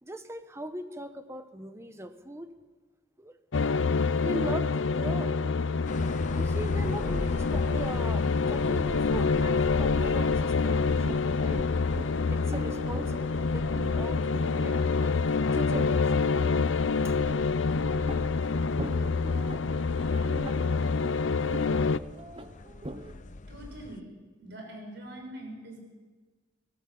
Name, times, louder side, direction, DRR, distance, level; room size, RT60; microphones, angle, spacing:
voice 1, 0.0-2.5 3.2-3.4 4.2-5.4 6.0-11.6 12.3-16.3 16.9-17.5, right 1 dB, 15° right, 9 dB, 1.2 m, -40 dB
sound 1, 3.5-22.0, left 4 dB, 85° left, 0.6 m, -27 dB
sound 2, 5.9-24.0, left 2 dB, 40° left, 0.8 m, -41 dB
sound 3, 10.7-23.1, right 1 dB, 30° right, 1.1 m, -43 dB
voice 2, 23.5-24.1 24.4-25.8, right 1 dB, 65° right, 2 dB, 6.5 m, -43 dB
23.5 x 17.0 x 7.2 m, 1.4 s
head